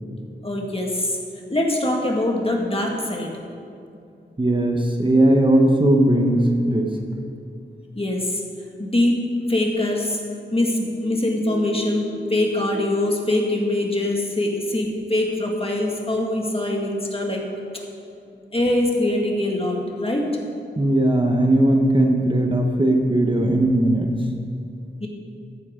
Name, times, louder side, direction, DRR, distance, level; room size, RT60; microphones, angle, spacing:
voice 1, 0.4-1.2 1.5-3.3 8.0-8.4 8.8-9.2 9.5-10.2 10.5-17.4 18.5-20.4 25.0-25.1, left 1 dB, 30° left, -1 dB, 1.9 m, -23 dB
voice 2, 4.4-6.9 20.8-24.1, right 1 dB, 25° right, 2 dB, 1.0 m, -18 dB
13.5 x 10.0 x 3.7 m, 2.5 s
wide cardioid pair, 65°, 19 cm